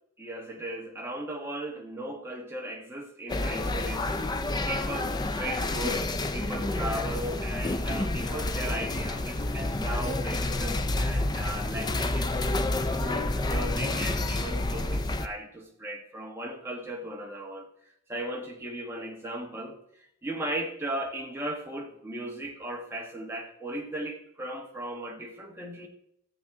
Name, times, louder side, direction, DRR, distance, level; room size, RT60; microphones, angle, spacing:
voice 1, 0.2-4.3 4.7-6.1 6.3-12.3 12.9-17.7 18.1-25.9, right 1 dB, 10° right, 0 dB, 1.3 m, -37 dB
sound 1, 3.3-15.3, left 2 dB, 20° left, 0.4 m, -29 dB
14.5 x 7.3 x 3.6 m, 0.74 s
head